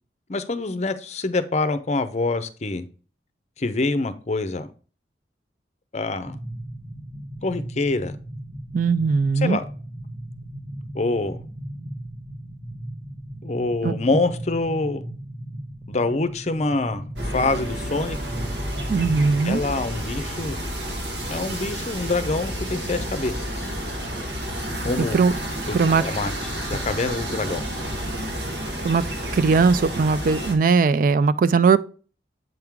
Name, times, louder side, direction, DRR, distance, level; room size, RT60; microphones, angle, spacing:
voice 1, 0.3-2.9 3.6-4.7 5.9-6.4 7.4-8.2 9.4-9.6 10.9-11.4 13.4-15.0 15.9-18.2 19.4-20.6 21.3-23.7 24.8-25.2 25.7-27.6, left 3 dB, 40° left, 0.6 m, -26 dB
sound 1, 6.2-19.5, right 1 dB, 15° right, 1.3 m, -37 dB
voice 2, 8.7-9.6 13.8-14.0 18.9-19.6 25.1-25.3 25.7-26.0 28.8-29.0 29.3-31.8, right 4 dB, 50° right, 0.3 m, -19 dB
sound 2, 17.1-30.5, equal, 80° right, 1.6 m, -30 dB
7.8 x 3.7 x 4.6 m
head